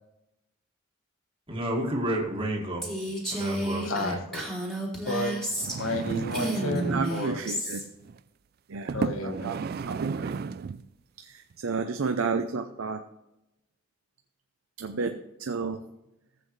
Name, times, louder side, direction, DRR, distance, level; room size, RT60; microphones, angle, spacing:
voice 1, 1.5-2.9 3.3-4.2, right 1 dB, 25° right, -1 dB, 1.9 m, -30 dB
Female speech woman speaking, 2.8-6.0 6.3-7.8, right 1 dB, ahead, 2.3 m, -31 dB
voice 2, 3.8-4.5 5.1-7.4 8.9-9.5, left 2 dB, 85° left, 6 dB, 1.3 m, -32 dB
sound 1, 5.5-7.2 8.0-8.2 8.9-10.9 11.5-11.6, right 5 dB, 45° right, 0.3 m, -33 dB
voice 3, 6.9-7.8 8.7-9.6 9.9-10.3 11.2-13.0 14.8-15.8, right 4 dB, 85° right, 7 dB, 0.6 m, -32 dB
14.5 x 7.8 x 3.2 m, 0.91 s
head